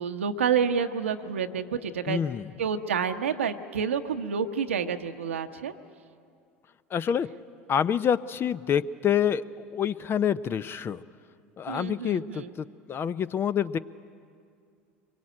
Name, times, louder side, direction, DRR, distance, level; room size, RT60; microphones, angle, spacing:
voice 1, 0.0-2.2 2.6-5.7 11.7-12.5, right 7 dB, 85° right, 7 dB, 1.1 m, -29 dB
voice 2, 2.1-2.5 6.9-7.3 7.7-11.0 11.6-13.8, left 8 dB, 35° left, 15 dB, 0.7 m, -27 dB
24.5 x 22.5 x 8.8 m, 2.4 s
hypercardioid pair, 75°, 7 cm